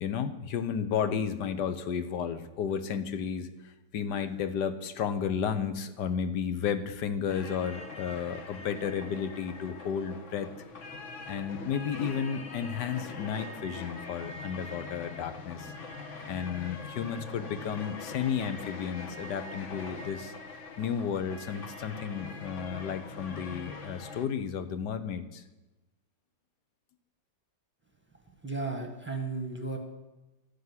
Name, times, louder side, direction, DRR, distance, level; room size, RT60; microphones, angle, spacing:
voice 1, 0.0-10.5 11.3-15.7 16.3-20.3 20.8-25.4, left 7 dB, 65° left, 10 dB, 1.4 m, -33 dB
sound 1, 7.3-24.3, left 3 dB, 45° left, 1.2 m, -43 dB
voice 2, 28.4-29.8, right 3 dB, 5° right, 2 dB, 1.5 m, -34 dB
13.5 x 6.6 x 9.6 m, 1.1 s
omnidirectional pair, 2.1 m